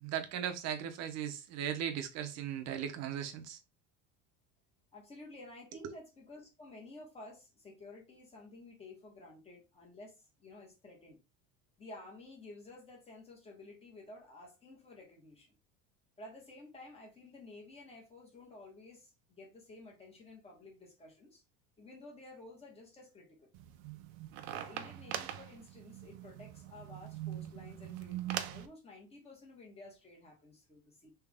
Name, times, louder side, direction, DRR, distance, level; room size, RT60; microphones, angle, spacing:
voice 1, 0.0-3.6 5.8-5.9, right 9 dB, 50° right, 0.8 m, -37 dB
voice 2, 4.9-11.2 11.8-15.6 16.2-21.4 21.8-23.5 24.5-31.1, left 2 dB, 20° left, 1.3 m, -53 dB
sound 1, 23.5-28.7, right 12 dB, 80° right, 0.7 m, -42 dB
3.5 x 3.1 x 3.5 m
cardioid pair, 160°, 34 cm